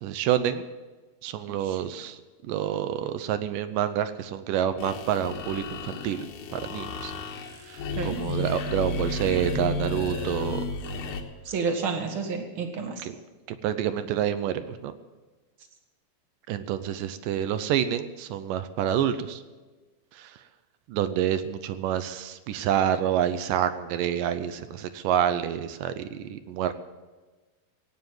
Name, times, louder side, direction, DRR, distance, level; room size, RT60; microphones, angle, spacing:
voice 1, 0.0-0.7 1.2-2.2 2.5-6.3 6.5-7.1 7.7-10.6 13.6-14.9 16.5-19.4 20.9-26.7, right 10 dB, 80° right, 11 dB, 2.1 m, -28 dB
sound 1, 4.8-11.2, left 3 dB, 70° left, 2.6 m, -33 dB
voice 2, 11.5-13.1, right 5 dB, 45° right, 4 dB, 1.8 m, -30 dB
16.5 x 9.3 x 7.9 m, 1.3 s
omnidirectional pair, 4.3 m